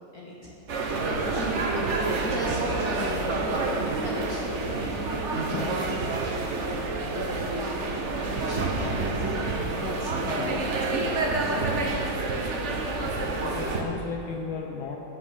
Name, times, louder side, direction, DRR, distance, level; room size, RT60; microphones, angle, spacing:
voice 1, 0.1-0.5 2.2-3.3 3.6-5.8 7.0-7.7 8.2-10.7 11.4-12.2, left 1 dB, 45° left, -4 dB, 2.0 m, -37 dB
sound 1, 0.7-13.8, right 3 dB, 45° right, 1.0 m, -28 dB
voice 2, 10.3-10.6 13.0-15.0, left 5 dB, 70° left, 2 dB, 1.5 m, -36 dB
13.0 x 8.7 x 6.4 m, 2.9 s
omnidirectional pair, 2.3 m